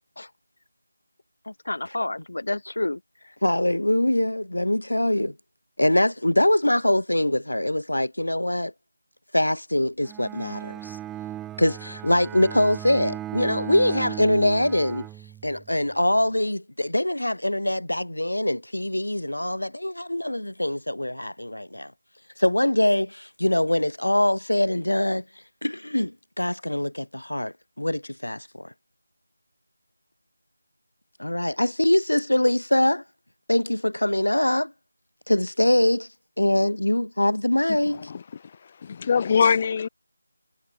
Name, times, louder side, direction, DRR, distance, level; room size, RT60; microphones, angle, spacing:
voice 1, 1.4-3.3, left 2 dB, 65° left, 6.8 m, -30 dB
voice 2, 3.4-5.3 5.8-8.7 9.3-11.0 11.6-15.1 15.4-21.9 22.4-25.2 25.6-28.7 31.2-33.0 33.5-34.7 35.3-36.1 36.4-38.1, left 1 dB, 90° left, 2.8 m, -23 dB
Bowed string instrument, 10.0-15.8, right 12 dB, 5° right, 2.5 m, -37 dB
voice 3, 37.8-39.9, left 6 dB, 25° left, 2.5 m, -24 dB
figure-of-eight pair, 165°, 0 cm